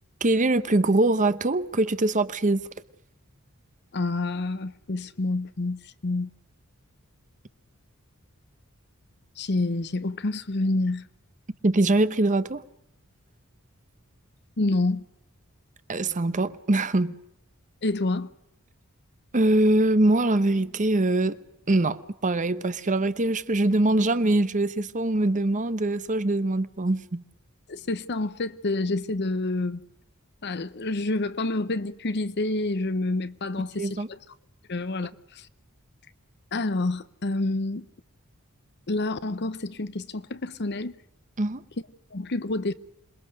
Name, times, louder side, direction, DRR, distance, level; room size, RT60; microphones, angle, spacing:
voice 1, 0.2-2.6 11.6-12.6 15.9-17.2 19.3-21.4 21.7-27.2 33.8-34.1 41.4-41.6, right 2 dB, 35° right, 0.9 m, -23 dB
voice 2, 3.9-6.3 9.4-11.1 14.6-15.0 17.8-18.3 27.7-29.8 30.4-34.2 34.7-35.5 36.5-37.9 38.9-40.9 42.1-42.7, left 2 dB, 55° left, 0.9 m, -28 dB
27.0 x 21.0 x 6.5 m
head